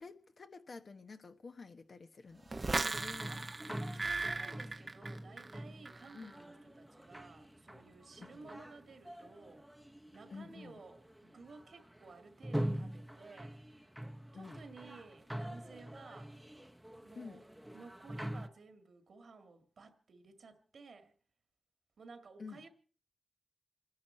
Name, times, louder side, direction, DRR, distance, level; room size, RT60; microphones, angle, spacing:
voice 1, 0.0-2.5 2.8-3.3 6.1-6.3 8.2-8.5 10.3-10.8 14.3-14.6 17.2-17.4 22.4-22.6, left 4 dB, 60° left, 1.2 m, -50 dB
sound 1, 2.5-18.5, right 1 dB, 5° right, 0.9 m, -45 dB
sound 2, 2.5-5.6 5.9-6.3, right 3 dB, 40° right, 0.7 m, -37 dB
voice 2, 3.9-9.7 10.1-13.6 14.3-16.4 17.0-21.1 22.0-22.7, right 4 dB, 75° right, 1.8 m, -55 dB
27.5 x 10.5 x 4.4 m
wide cardioid pair, 75°, 0 cm